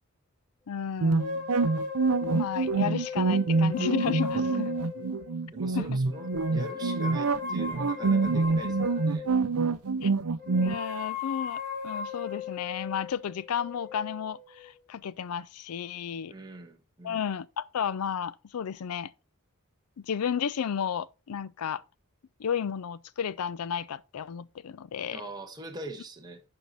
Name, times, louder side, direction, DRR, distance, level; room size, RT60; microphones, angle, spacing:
voice 1, 0.7-1.5 2.3-4.7 5.7-5.9 10.0-10.1 10.6-16.3 17.0-19.1 20.0-21.8 22.4-25.2, left 8 dB, 80° left, 0.4 m, -33 dB
sound 1, 1.0-10.7, right 4 dB, 75° right, 0.6 m, -26 dB
sound 2, 1.2-5.4 6.1-9.5 10.4-14.8, left 6 dB, 45° right, 4.7 m, -37 dB
voice 2, 5.5-9.3 16.3-17.2 25.1-26.4, right 2 dB, 20° right, 1.4 m, -43 dB
11.0 x 4.5 x 4.0 m
head